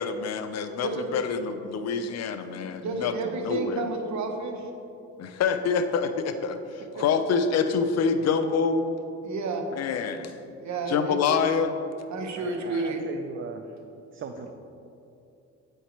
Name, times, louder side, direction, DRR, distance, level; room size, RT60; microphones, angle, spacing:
voice 1, 0.0-3.1 3.4-3.9 5.2-8.8 9.8-10.3 10.9-11.7, left 5 dB, 60° left, 8 dB, 0.6 m, -26 dB
voice 2, 2.8-4.7 6.9-7.0 9.2-9.6 10.6-11.2 12.1-13.1, right 3 dB, 70° right, 4 dB, 1.0 m, -31 dB
voice 3, 12.4-13.6 14.1-14.5, right 6 dB, 45° right, 5 dB, 0.5 m, -38 dB
8.0 x 4.6 x 4.5 m, 2.8 s
cardioid pair, 90°, 30 cm